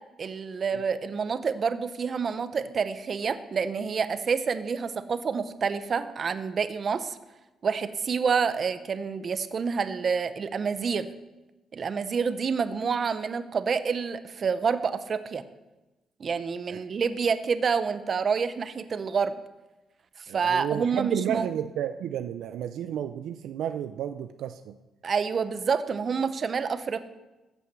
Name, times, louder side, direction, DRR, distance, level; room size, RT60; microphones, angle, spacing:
voice 1, 0.2-7.2 7.6-11.1 11.7-15.4 16.2-19.3 20.3-21.5 25.0-27.0, right 5 dB, 45° right, 11 dB, 0.9 m, -28 dB
voice 2, 20.3-24.8, right 10 dB, 80° right, 9 dB, 0.6 m, -32 dB
15.0 x 8.2 x 6.2 m, 1.1 s
cardioid pair, 90°, 0 cm